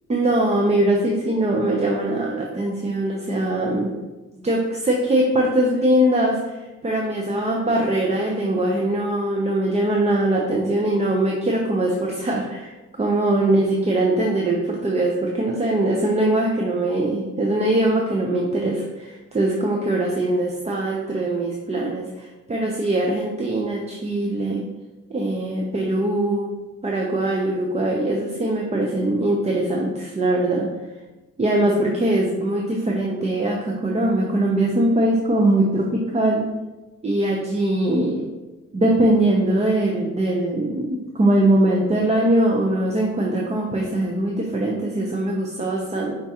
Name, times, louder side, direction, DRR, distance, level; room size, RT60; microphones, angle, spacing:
voice 1, 0.1-3.9 4.4-24.6 25.1-26.5 26.8-30.7 31.4-36.4 37.0-38.2 38.7-46.2, right 1 dB, 20° right, -1 dB, 0.6 m, -21 dB
5.2 x 3.6 x 2.8 m, 1.1 s
cardioid pair, 90°, 30 cm